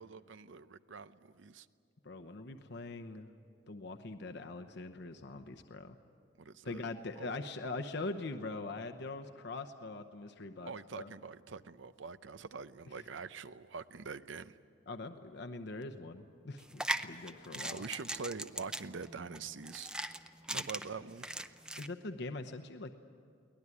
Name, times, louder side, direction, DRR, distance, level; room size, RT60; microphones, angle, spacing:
voice 1, 0.0-1.7 6.4-6.9 7.2-7.4 10.6-14.6 17.5-19.9 20.5-21.3, right 5 dB, 85° right, 13 dB, 0.7 m, -45 dB
voice 2, 2.0-3.3 3.7-6.0 6.6-11.1 14.9-17.8 20.5-20.6 21.8-22.9, left 3 dB, 65° left, 6 dB, 0.9 m, -42 dB
sound 1, 16.6-21.9, right 1 dB, 5° right, 0.6 m, -39 dB
23.0 x 18.5 x 9.8 m, 2.3 s
head